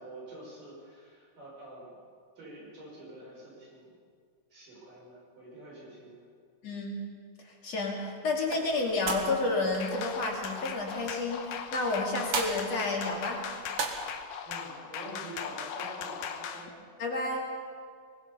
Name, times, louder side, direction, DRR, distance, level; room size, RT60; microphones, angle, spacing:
voice 1, 0.0-1.9 2.4-3.9 4.5-6.2 14.4-16.7, right 1 dB, 70° right, -4 dB, 8.1 m, -47 dB
voice 2, 6.6-7.0 7.6-13.4 17.0-17.4, left 2 dB, 50° left, -1 dB, 3.6 m, -30 dB
sound 1, 8.3-14.2, right 4 dB, 50° right, 2.5 m, -39 dB
sound 2, 9.8-16.7, left 7 dB, 75° left, 2.7 m, -39 dB
23.5 x 20.5 x 5.6 m, 2.1 s
omnidirectional pair, 3.9 m